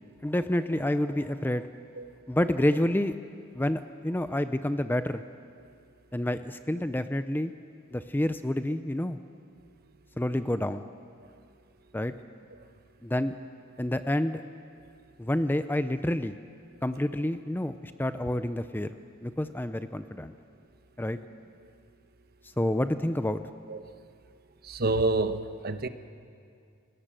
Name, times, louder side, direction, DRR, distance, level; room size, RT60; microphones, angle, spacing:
voice 1, 0.2-1.7 2.3-3.2 3.5-5.2 6.1-7.5 7.9-9.2 10.2-10.9 11.9-12.1 13.0-13.3 13.8-14.4 15.2-16.3 16.8-18.9 19.2-20.3 21.0-21.2 22.6-23.4, left 1 dB, 10° left, 11 dB, 0.5 m, -28 dB
voice 2, 24.6-25.9, right 2 dB, 45° right, 10 dB, 1.0 m, -28 dB
30.0 x 18.0 x 7.6 m, 2.4 s
head